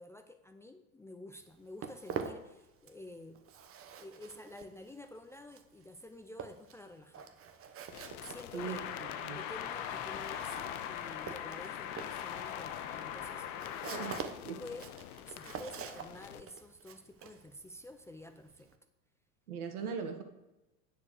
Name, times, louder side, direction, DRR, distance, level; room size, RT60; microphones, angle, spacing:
voice 1, 0.0-3.4 4.0-7.4 8.2-8.9 9.1-13.5 14.4-18.7, left 1 dB, 5° left, 7 dB, 0.3 m, -50 dB
Walk footsteps, 1.4-3.1 3.3-18.7, right 7 dB, 30° right, 1.0 m, -46 dB
sound 1, 7.9-16.4, left 14 dB, 85° left, 0.6 m, -50 dB
sound 2, 8.6-14.2, left 9 dB, 60° left, 1.1 m, -40 dB
voice 2, 13.9-14.6 19.5-20.2, right 6 dB, 90° right, 6 dB, 1.5 m, -39 dB
9.7 x 4.6 x 6.4 m, 1.0 s
hypercardioid pair, 100°, 43 cm